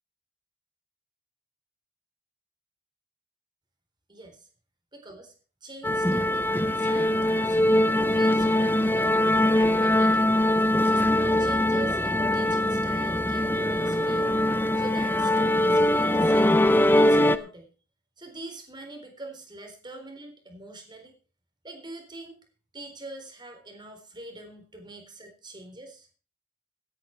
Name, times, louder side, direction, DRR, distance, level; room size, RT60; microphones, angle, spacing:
voice 1, 4.1-4.5 4.9-5.3 5.6-7.8 8.1-9.1 9.5-10.4 10.8-14.3 14.8-16.6 16.9-17.7 18.2-21.1 21.6-22.4 22.7-26.1, right 2 dB, 20° right, 4 dB, 4.1 m, -44 dB
sound 1, 5.8-17.4, left 1 dB, 10° left, 0.7 m, -22 dB
17.0 x 9.8 x 4.6 m, 0.37 s
head